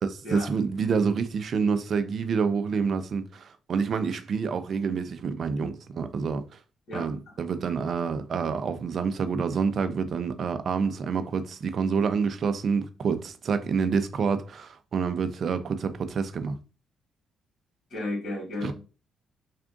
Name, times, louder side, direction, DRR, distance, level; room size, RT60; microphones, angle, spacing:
voice 1, 0.0-6.6 6.9-16.6 18.6-18.7, right 5 dB, 55° right, 0.5 m, -28 dB
voice 2, 6.9-7.4 17.9-18.7, left 2 dB, 60° left, 2.2 m, -33 dB
3.5 x 2.5 x 3.7 m
cardioid pair, 90°, 0 cm